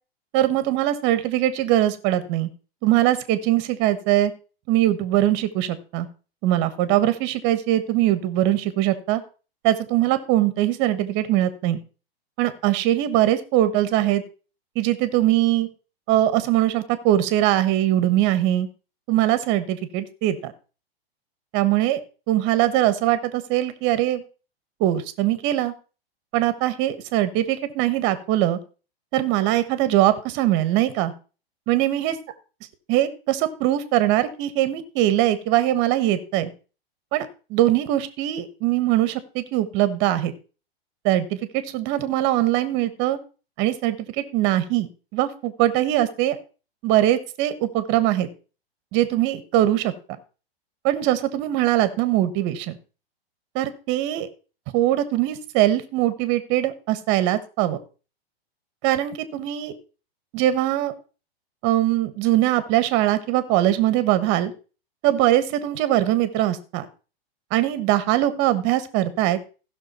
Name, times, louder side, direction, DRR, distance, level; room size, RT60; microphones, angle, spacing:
voice 1, 0.3-2.5 2.8-4.3 4.7-6.1 6.4-9.2 9.6-11.8 12.4-14.2 14.7-15.7 16.1-18.7 19.1-20.5 21.5-22.0 22.3-24.2 24.8-25.7 26.3-28.6 29.1-31.1 31.7-32.1 32.9-36.5 37.1-40.3 41.0-43.2 43.6-46.4 46.8-48.3 48.9-49.9 50.8-52.8 53.5-54.3 54.7-57.8 58.8-59.7 60.3-60.9 61.6-64.5 65.0-66.9 67.5-69.4, right 14 dB, 40° right, 12 dB, 1.4 m, -21 dB
15.5 x 6.3 x 4.3 m, 0.35 s
hypercardioid pair, 130°, 30 cm